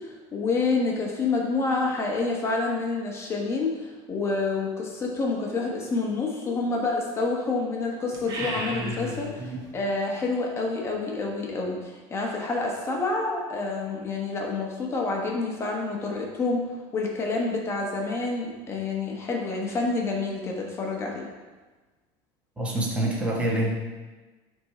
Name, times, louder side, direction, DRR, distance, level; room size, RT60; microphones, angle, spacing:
voice 1, 0.0-16.6 16.9-21.3, left 3 dB, 20° left, -1 dB, 1.1 m, -28 dB
sound 1, 8.1-9.7, right 1 dB, 30° right, 1.2 m, -33 dB
voice 2, 22.6-23.7, right 1 dB, 10° right, -4 dB, 1.3 m, -26 dB
9.5 x 3.7 x 4.3 m, 1.3 s
cardioid pair, 155°, 12 cm